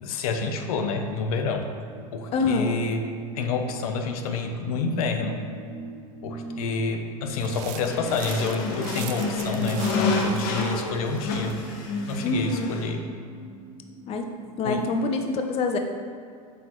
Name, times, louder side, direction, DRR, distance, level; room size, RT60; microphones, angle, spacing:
voice 1, 0.0-1.7 2.1-3.1 3.3-5.4 6.2-11.6 12.1-13.0 14.6-14.9, left 4 dB, 75° left, 5 dB, 0.7 m, -28 dB
sound 1, 0.6-14.9, right 4 dB, 25° right, 0.7 m, -44 dB
voice 2, 2.3-2.8 12.2-12.7 14.1-14.3 14.6-15.8, left 3 dB, 35° left, 5 dB, 0.5 m, -25 dB
sound 2, 7.4-11.6, right 11 dB, 60° right, 0.5 m, -42 dB
sound 3, 7.8-12.9, left 3 dB, 60° left, 1.1 m, -29 dB
7.8 x 4.4 x 3.0 m, 2.3 s
hypercardioid pair, 110°, 19 cm